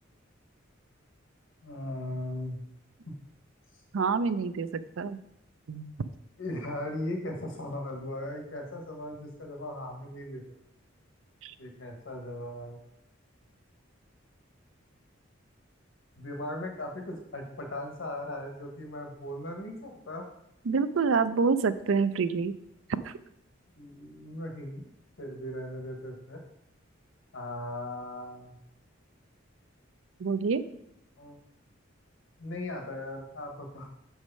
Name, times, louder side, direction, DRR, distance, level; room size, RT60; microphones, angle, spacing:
voice 1, 1.6-2.6 6.4-10.4 11.6-12.8 16.2-20.3 23.8-24.9 25.2-26.4 27.3-28.6 31.2-31.4 32.4-33.9, left 1 dB, 75° left, 2 dB, 1.3 m, -38 dB
voice 2, 3.9-5.2 5.7-5.9 11.4-11.5 20.7-22.5 22.9-23.2 30.2-30.6, right 5 dB, 75° right, 13 dB, 0.5 m, -27 dB
6.2 x 4.8 x 5.4 m, 0.78 s
head